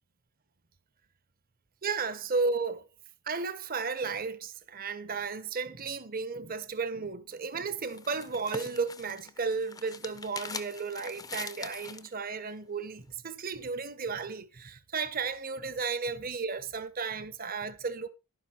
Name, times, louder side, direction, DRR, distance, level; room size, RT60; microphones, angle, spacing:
voice 1, 1.8-2.9 3.2-18.1, right 4 dB, 40° right, 1.0 m, -34 dB
sound 1, 7.3-12.1, left 4 dB, 15° left, 0.7 m, -43 dB
11.5 x 9.5 x 4.3 m
head